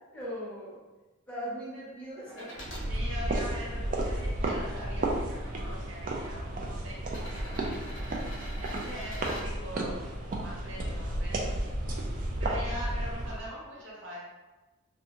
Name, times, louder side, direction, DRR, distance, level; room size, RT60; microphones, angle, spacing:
voice 1, 0.1-0.8 1.3-2.9, equal, 5° left, -9 dB, 0.6 m, -39 dB
sound 1, 2.3-2.9 3.6-4.6 5.6-5.7 7.0-9.5 11.3-11.4, equal, 60° left, 0.8 m, -45 dB
sound 2, 2.6-13.5, right 1 dB, 40° right, 0.3 m, -33 dB
voice 2, 2.9-8.3 8.6-10.0 10.4-14.2, equal, 60° right, -5 dB, 0.8 m, -43 dB
2.6 x 2.2 x 2.7 m, 1.1 s
head